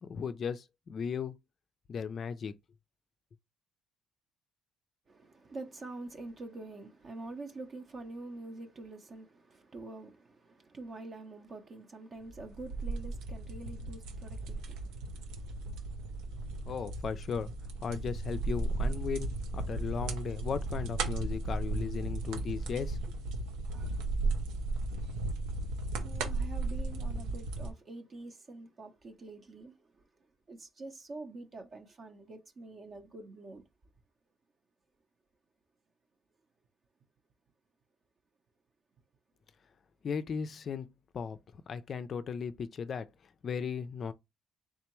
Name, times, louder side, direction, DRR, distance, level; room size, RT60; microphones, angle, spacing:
voice 1, 0.0-1.4 1.9-2.5 16.6-17.5 17.8-23.0 40.0-43.1 43.4-44.1, left 6 dB, 40° left, 0.3 m, -36 dB
voice 2, 5.1-16.7 26.0-30.0 30.5-33.7, right 2 dB, 35° right, 0.6 m, -46 dB
sound 1, 12.3-27.7, right 2 dB, 90° right, 0.7 m, -35 dB
3.6 x 3.3 x 3.0 m
cardioid pair, 130°, 0 cm